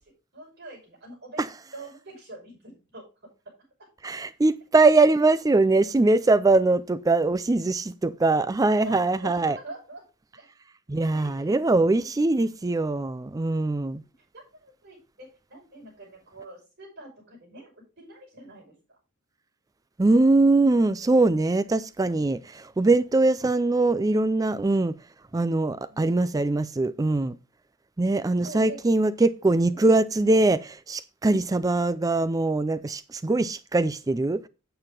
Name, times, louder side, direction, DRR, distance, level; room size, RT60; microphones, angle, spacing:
voice 1, 0.3-3.1 8.8-10.0 10.3-10.4 11.1-11.5 12.0-12.3 14.3-19.0 25.9-26.2 28.4-28.8 29.7-29.9, right 2 dB, 50° right, 5.9 m, -44 dB
voice 2, 4.0-9.6 10.9-14.0 20.0-25.0 25.3-27.4 28.0-34.5, right 2 dB, 15° right, 0.4 m, -22 dB
9.0 x 7.8 x 3.7 m
head